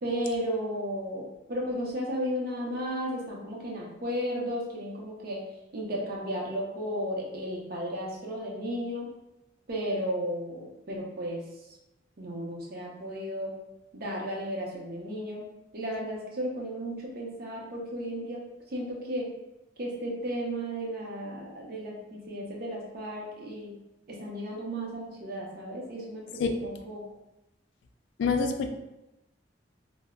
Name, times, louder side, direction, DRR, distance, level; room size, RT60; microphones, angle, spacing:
voice 1, 0.0-5.4 5.7-9.1 9.7-11.7 12.2-13.5 13.9-15.4 15.7-19.4 19.8-23.8 24.1-27.0, equal, 55° right, -2 dB, 0.6 m, -34 dB
voice 2, 28.2-28.7, left 5 dB, 80° left, 5 dB, 0.3 m, -26 dB
2.1 x 2.0 x 3.5 m, 0.94 s
head